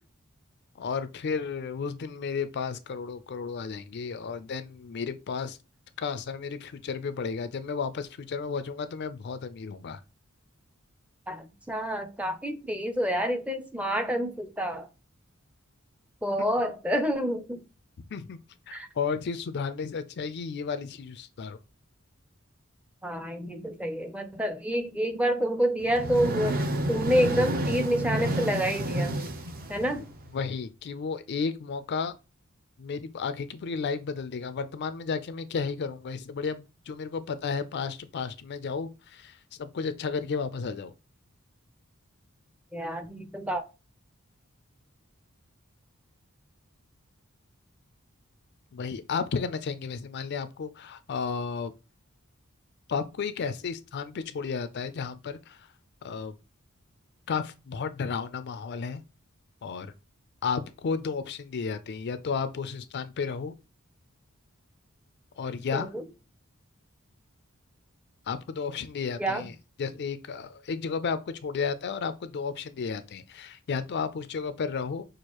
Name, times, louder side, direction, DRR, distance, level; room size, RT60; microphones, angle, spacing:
voice 1, 0.8-5.6 6.0-10.0 18.1-18.4 18.7-21.6 29.9-30.0 30.3-32.2 32.8-40.9 48.7-51.7 52.9-55.7 56.0-56.3 57.3-59.0 59.6-59.9 60.4-63.5 65.4-65.9 68.3-69.5 69.8-75.1, left 5 dB, 55° left, 0.4 m, -33 dB
voice 2, 11.3-14.9 16.2-17.6 18.7-18.9 23.0-29.2 29.7-30.1 42.7-43.6 65.7-66.0 69.2-69.4, equal, 5° right, 0.5 m, -28 dB
sound 1, 25.8-30.4, right 1 dB, 45° right, 0.7 m, -30 dB
6.3 x 2.5 x 2.9 m
head